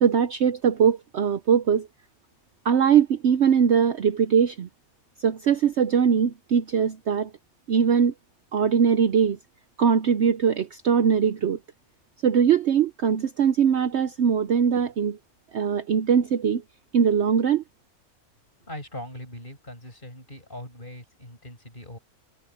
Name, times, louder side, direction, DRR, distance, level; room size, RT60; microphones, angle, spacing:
voice 1, 0.0-1.9 2.6-4.7 5.2-7.3 7.7-8.1 8.5-9.4 9.8-11.6 12.2-15.2 15.5-16.6 16.9-17.6, right 7 dB, 60° right, 0.9 m, -21 dB
voice 2, 18.6-22.0, left 1 dB, 35° left, 7.0 m, -40 dB
omnidirectional pair, 1.5 m